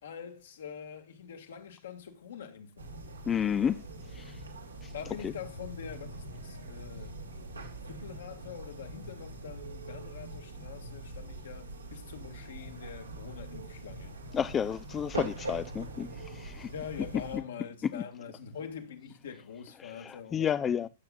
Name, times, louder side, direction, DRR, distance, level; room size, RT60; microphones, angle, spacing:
voice 1, 0.0-2.9 4.9-7.2 7.9-14.2 16.7-20.9, left 7 dB, 70° left, 2.1 m, -44 dB
sound 1, 2.8-17.4, right 2 dB, 90° right, 2.5 m, -43 dB
voice 2, 3.3-3.8 4.1-4.3 14.3-16.7 17.9-18.0 19.8-20.9, left 8 dB, 20° left, 0.4 m, -31 dB
16.0 x 7.2 x 2.4 m
figure-of-eight pair, 105°, 0 cm